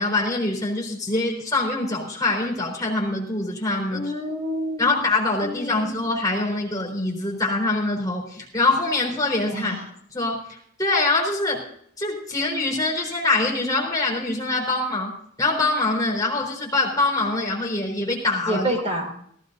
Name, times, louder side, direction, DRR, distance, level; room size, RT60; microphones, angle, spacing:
voice 1, 0.0-4.1 4.8-9.7 10.1-11.6 12.0-15.1 15.4-18.7, left 2 dB, 20° left, -3 dB, 4.0 m, -24 dB
voice 2, 3.9-5.0 5.4-6.0 9.5-9.8 18.5-19.1, right 1 dB, 35° right, 1 dB, 4.0 m, -28 dB
18.0 x 15.5 x 2.7 m, 0.65 s
head